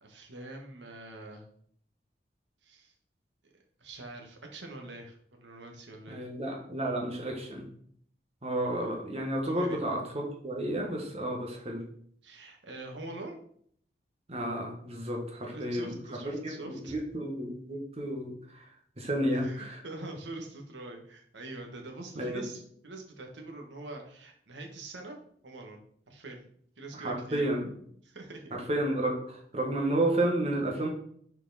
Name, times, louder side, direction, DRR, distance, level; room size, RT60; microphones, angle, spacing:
voice 1, 0.0-1.4 2.6-2.9 3.8-6.2 9.4-9.8 12.2-13.4 15.4-17.0 19.4-25.2 25.4-25.8 26.1-26.5 26.8-27.5 28.0-28.6, right 2 dB, 90° right, 2 dB, 1.4 m, -44 dB
voice 2, 6.1-7.6 8.4-11.8 14.3-16.0 16.2-18.7 19.0-19.8 22.2-22.5 26.9-27.7 28.5-30.9, right 1 dB, 35° right, 1 dB, 1.4 m, -31 dB
6.5 x 4.6 x 4.1 m, 0.63 s
head